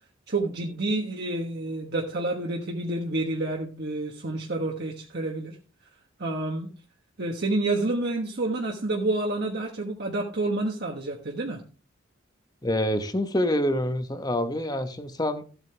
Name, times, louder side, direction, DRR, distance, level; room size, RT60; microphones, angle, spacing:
voice 1, 0.3-5.5 6.2-6.7 7.2-11.6, right 2 dB, 55° right, 0 dB, 1.3 m, -29 dB
voice 2, 12.6-15.5, left 1 dB, 20° left, 9 dB, 1.1 m, -26 dB
14.0 x 8.2 x 3.4 m, 0.37 s
head